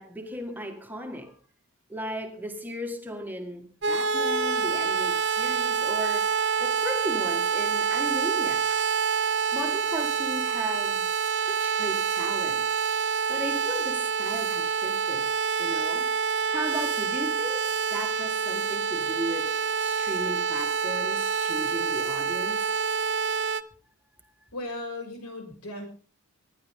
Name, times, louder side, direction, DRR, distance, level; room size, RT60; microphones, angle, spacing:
voice 1, 0.0-1.4 1.9-8.9 9.5-11.1 11.4-12.7 13.3-15.3 15.6-22.8, equal, 10° right, 1.8 m, -36 dB
sound 1, 3.8-23.6, right 6 dB, 50° right, 0.9 m, -27 dB
voice 2, 24.5-25.9, left 2 dB, 85° left, 6.6 m, -36 dB
25.5 x 11.5 x 3.7 m
head